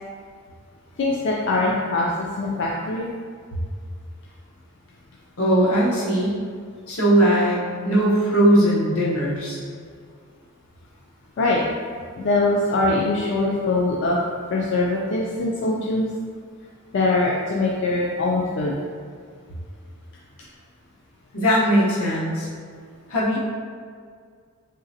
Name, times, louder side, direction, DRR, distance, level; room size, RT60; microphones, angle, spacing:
voice 1, 1.0-2.1 2.4-3.1 11.4-11.6 12.2-14.2 14.5-16.1 16.9-18.7, left 2 dB, 55° left, -3 dB, 0.3 m, -22 dB
voice 2, 5.4-6.4 6.9-9.6 21.3-22.5 23.1-23.4, right 1 dB, 80° left, -6 dB, 1.0 m, -19 dB
3.7 x 3.1 x 2.7 m, 2.1 s
head